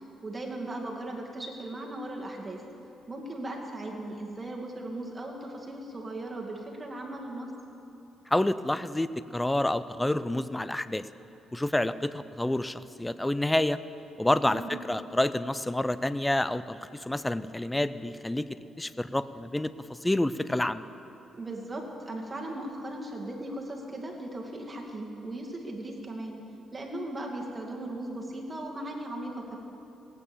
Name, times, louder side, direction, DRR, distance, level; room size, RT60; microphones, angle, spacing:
voice 1, 0.2-2.6 3.1-7.5 14.4-14.8 21.3-26.4 26.7-29.6, right 1 dB, 25° right, 0 dB, 2.2 m, -37 dB
voice 2, 8.3-11.0 11.5-13.8 14.2-18.5 18.8-20.8, left 1 dB, 10° left, 14 dB, 0.5 m, -28 dB
17.0 x 9.1 x 6.9 m, 2.9 s
cardioid pair, 90°, 0 cm